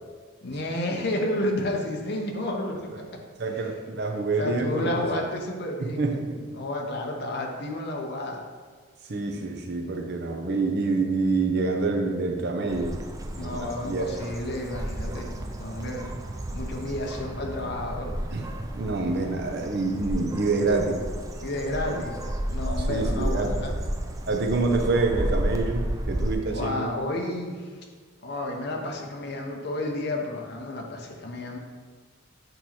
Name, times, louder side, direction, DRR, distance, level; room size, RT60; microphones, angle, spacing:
voice 1, 0.4-3.2 4.4-6.3 6.5-8.4 13.3-16.1 16.5-18.2 21.4-22.2 22.5-23.8 26.5-27.8 28.2-31.6, left 1 dB, 55° left, 1 dB, 0.8 m, -31 dB
voice 2, 3.4-4.9 5.8-6.4 9.1-13.0 13.4-14.1 18.3-18.5 18.7-21.0 21.9-22.0 22.9-23.5 24.3-26.9, right 3 dB, 55° right, 3 dB, 0.7 m, -27 dB
sound 1, 12.7-26.4, right 1 dB, 15° right, 0.3 m, -32 dB
8.0 x 3.0 x 4.2 m, 1.5 s
head